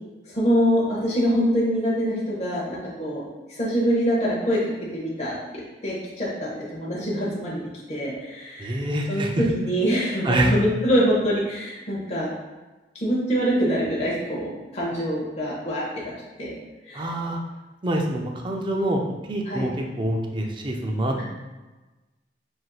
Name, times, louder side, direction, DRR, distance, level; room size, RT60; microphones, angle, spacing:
voice 1, 0.3-3.2 3.6-4.6 4.9-7.6 7.9-8.8 9.1-12.3 12.9-16.0 16.4-16.5 16.9-17.0 19.5-19.7 21.2-21.3, equal, 40° left, -6 dB, 0.9 m, -24 dB
voice 2, 8.6-9.4 10.2-10.5 16.9-17.4 17.8-19.0 19.3-21.2, right 1 dB, 25° right, 1 dB, 0.4 m, -25 dB
6.0 x 2.6 x 2.3 m, 1.2 s
head